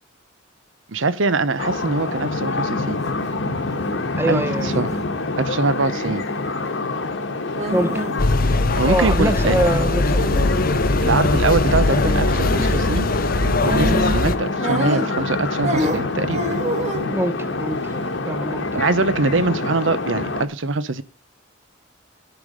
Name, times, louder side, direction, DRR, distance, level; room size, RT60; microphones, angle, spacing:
voice 1, 0.9-3.0 4.3-4.9 5.4-6.2 8.8-9.6 11.0-13.1 13.4-16.6 18.7-21.0, right 3 dB, 75° right, 0.9 m, -23 dB
sound 1, 1.6-20.5, left 2 dB, 70° left, 1.4 m, -26 dB
sound 2, 2.8-3.1 3.4-3.9 4.5-5.0 5.9-6.3 7.5-8.3 8.5-8.6 9.3-10.5 11.8-12.2 12.5-12.8 13.6-14.3 14.6-15.3 15.6-17.1 17.7-18.2, right 1 dB, 35° right, 1.7 m, -28 dB
voice 2, 4.2-4.7 7.7-8.0 8.9-10.3 17.1-17.8 18.3-18.7, right 1 dB, 10° right, 0.8 m, -23 dB
sound 3, 8.2-14.4, left 2 dB, 45° left, 0.7 m, -20 dB
11.0 x 5.0 x 5.2 m
head